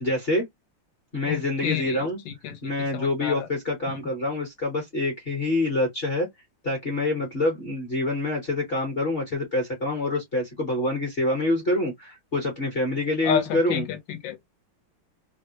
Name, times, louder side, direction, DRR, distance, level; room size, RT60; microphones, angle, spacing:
voice 1, 0.0-0.4 1.1-2.2 2.6-6.3 6.6-13.9, left 2 dB, 40° left, 1.0 m, -26 dB
voice 2, 1.2-3.5 3.9-4.0 13.2-14.4, left 8 dB, 70° left, 1.4 m, -30 dB
3.3 x 2.3 x 2.8 m
omnidirectional pair, 2.2 m